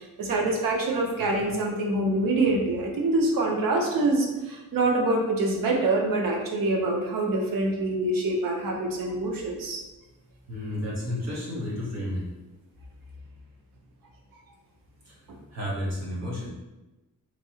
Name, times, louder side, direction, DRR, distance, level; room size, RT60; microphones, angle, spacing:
voice 1, 0.0-9.8, right 2 dB, 80° right, 0 dB, 0.7 m, -25 dB
voice 2, 10.5-12.2 15.1-15.2 15.5-16.5, left 1 dB, 50° right, -5 dB, 1.0 m, -31 dB
3.0 x 2.7 x 2.8 m, 1.0 s
wide cardioid pair, 155°, 33 cm